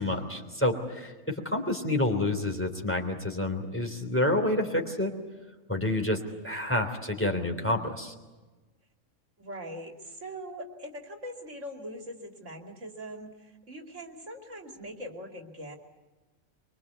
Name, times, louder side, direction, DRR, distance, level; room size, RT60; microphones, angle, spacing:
voice 1, 0.0-5.1 5.7-8.1, left 1 dB, 10° left, 3 dB, 3.2 m, -28 dB
voice 2, 1.2-1.7 9.4-15.8, equal, 60° right, 3 dB, 3.0 m, -42 dB
24.5 x 24.0 x 8.2 m, 1.2 s
omnidirectional pair, 1.4 m